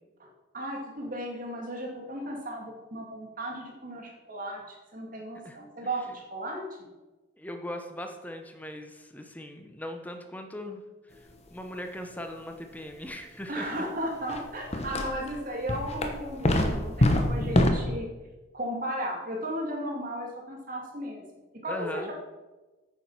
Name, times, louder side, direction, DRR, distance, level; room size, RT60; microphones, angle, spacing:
voice 1, 0.5-6.7 13.5-18.1 18.5-21.2 21.6-22.1, equal, 45° right, 0 dB, 2.3 m, -35 dB
voice 2, 7.4-10.8 11.5-13.8 21.7-22.1, left 1 dB, 10° left, 5 dB, 0.8 m, -39 dB
sound 1, 14.3-14.4 14.7-15.3 15.7-17.7, left 1 dB, 35° left, 1.0 m, -24 dB
9.2 x 7.3 x 5.6 m, 1.2 s
head